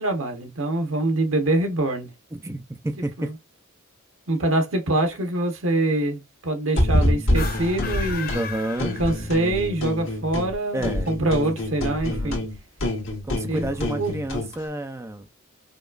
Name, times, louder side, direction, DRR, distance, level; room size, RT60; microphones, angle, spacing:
voice 1, 0.0-2.1 3.2-3.3 4.3-8.3 9.0-12.4 13.5-13.7 14.0-14.1, right 2 dB, 80° right, 1.0 m, -24 dB
voice 2, 2.3-3.3 8.3-9.0 10.7-11.4 12.1-12.5 13.2-15.3, right 1 dB, 15° right, 0.4 m, -30 dB
sound 1, 6.7-8.4 8.8-10.5 10.8-14.5, left 1 dB, 70° left, 1.6 m, -26 dB
sound 2, 7.2-9.6, left 5 dB, 45° left, 0.7 m, -35 dB
5.1 x 2.3 x 2.3 m
head